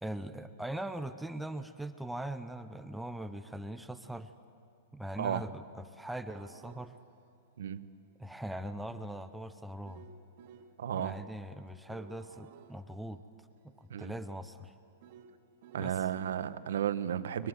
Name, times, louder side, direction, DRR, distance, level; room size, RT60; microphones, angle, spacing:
voice 1, 0.0-4.3 4.9-6.9 8.2-10.0 10.9-13.2 13.6-14.7 15.8-16.0 17.4-17.5, right 1 dB, ahead, 9 dB, 0.5 m, -41 dB
sound 1, 6.3-11.3 11.7-16.4, right 7 dB, 45° right, 2.1 m, -58 dB
voice 2, 10.8-11.2 13.9-14.1 15.7-17.5, right 9 dB, 80° right, 13 dB, 1.0 m, -33 dB
23.0 x 21.5 x 8.0 m, 2.5 s
supercardioid pair, 170°, 0 cm